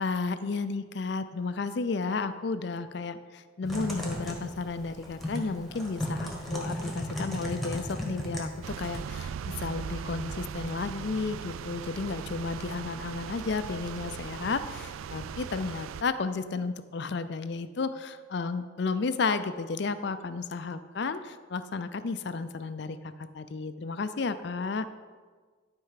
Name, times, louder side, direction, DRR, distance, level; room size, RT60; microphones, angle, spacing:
voice 1, 0.0-24.9, left 4 dB, 55° left, 12 dB, 0.4 m, -33 dB
Typing, 3.6-9.0, equal, ahead, 1.4 m, -35 dB
sound 1, 8.6-16.0, right 7 dB, 85° right, 0.3 m, -39 dB
12.5 x 4.4 x 5.7 m, 1.5 s
head